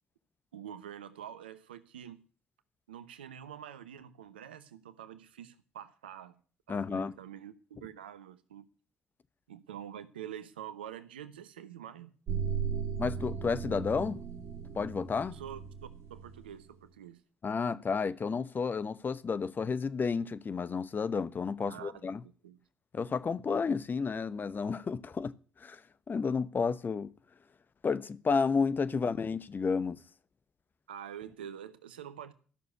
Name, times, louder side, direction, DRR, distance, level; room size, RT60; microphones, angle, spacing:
voice 1, 0.5-2.2 2.9-6.4 6.7-8.6 9.5-12.1 15.3-15.6 16.1-17.2 21.6-22.6 30.9-32.3, right 9 dB, 85° right, 0.8 m, -46 dB
voice 2, 6.7-7.1 13.0-14.2 14.7-15.4 17.4-22.2 22.9-25.3 25.6-25.8 26.1-27.1 27.8-30.0, left 5 dB, 35° left, 1.0 m, -31 dB
sound 1, 12.3-16.5, right 6 dB, 55° right, 2.1 m, -37 dB
13.0 x 6.7 x 9.4 m
hypercardioid pair, 50°, 5 cm